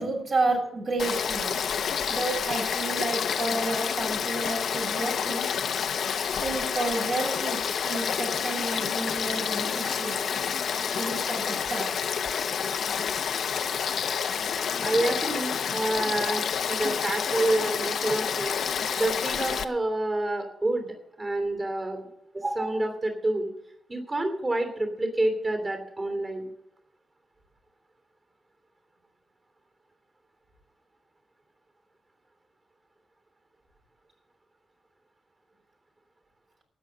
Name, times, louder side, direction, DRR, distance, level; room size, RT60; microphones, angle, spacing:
voice 1, 0.0-1.5 2.1-5.5 6.4-10.2 10.8-11.9, right 2 dB, 55° right, 0 dB, 6.4 m, -31 dB
Frog / Stream, 1.0-19.6, left 7 dB, 70° left, 0.8 m, -29 dB
voice 2, 14.8-18.5 19.0-22.0 22.3-23.5 23.9-26.5, right 2 dB, 25° right, 5 dB, 2.9 m, -28 dB
13.0 x 9.4 x 7.4 m, 0.79 s
cardioid pair, 100°, 0 cm